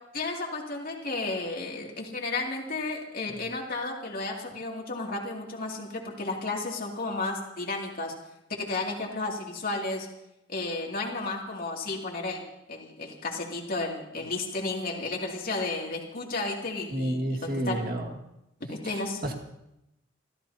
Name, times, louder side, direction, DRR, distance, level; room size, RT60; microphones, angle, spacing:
voice 1, 0.1-8.1 8.5-10.1 10.5-12.4 12.7-17.8 18.6-19.2, left 3 dB, 50° left, -1 dB, 2.7 m, -33 dB
voice 2, 16.9-18.1 18.8-19.3, right 1 dB, 50° right, 4 dB, 2.0 m, -31 dB
29.5 x 14.5 x 2.9 m, 0.86 s
head